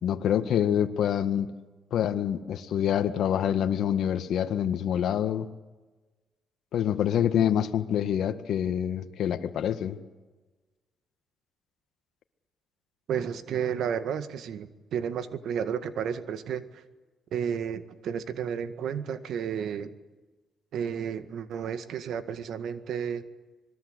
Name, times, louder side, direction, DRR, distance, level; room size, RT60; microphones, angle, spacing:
voice 1, 0.0-1.5 1.9-5.5 6.7-10.0, left 9 dB, 75° left, 9 dB, 1.6 m, -26 dB
voice 2, 13.1-16.8 17.3-19.9 20.7-23.3, right 8 dB, 70° right, 10 dB, 1.8 m, -32 dB
26.0 x 21.5 x 8.2 m, 1.2 s
cardioid pair, 90°, 0 cm